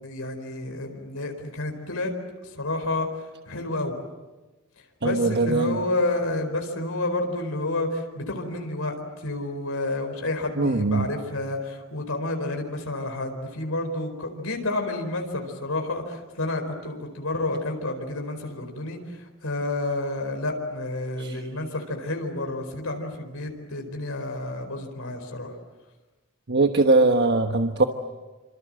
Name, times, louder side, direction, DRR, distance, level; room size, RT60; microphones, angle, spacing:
voice 1, 0.0-2.1 2.4-4.0 4.8-25.5, left 2 dB, 85° left, 4 dB, 4.6 m, -30 dB
voice 2, 5.0-5.8 10.6-11.1 21.2-21.4 26.5-27.8, right 3 dB, 55° right, 5 dB, 1.3 m, -21 dB
28.0 x 27.0 x 7.7 m, 1.2 s
head